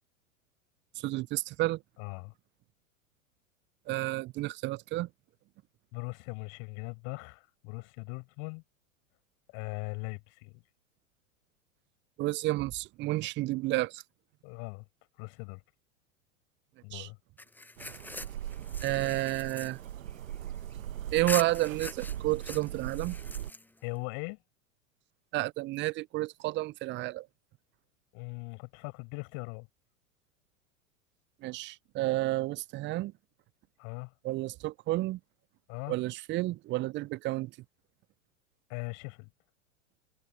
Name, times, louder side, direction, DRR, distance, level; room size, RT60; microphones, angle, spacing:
voice 1, 1.0-1.8 3.9-5.1 12.2-14.0 16.9-17.1 18.8-19.8 21.1-23.2 25.3-27.3 31.4-33.1 34.2-35.2 35.9-37.5, right 18 dB, 30° right, 0.6 m, -31 dB
voice 2, 2.0-2.3 5.9-8.6 9.5-10.6 14.4-14.8 15.2-15.6 16.8-17.2 23.8-24.4 28.1-29.7 33.8-34.1 35.7-36.0 38.7-39.3, left 37 dB, 50° left, 5.4 m, -40 dB
sound 1, 17.4-20.8 21.3-24.0, left 2 dB, 5° left, 1.0 m, -43 dB
sound 2, 17.8-23.5, right 11 dB, 75° right, 1.3 m, -40 dB
figure-of-eight pair, 90°, 41 cm